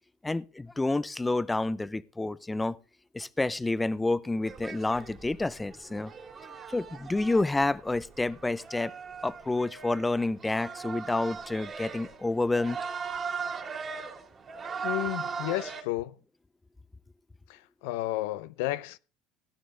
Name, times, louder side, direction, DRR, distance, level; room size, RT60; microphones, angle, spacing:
voice 1, 0.2-2.8 3.1-6.1 6.7-8.9 9.2-12.8, left 2 dB, 10° left, 0.5 m, -29 dB
sound 1, 4.4-15.8, right 6 dB, 30° right, 2.5 m, -39 dB
voice 2, 14.8-16.2 17.5-19.0, left 16 dB, 85° left, 0.6 m, -32 dB
16.0 x 9.1 x 3.8 m
supercardioid pair, 115°, 0 cm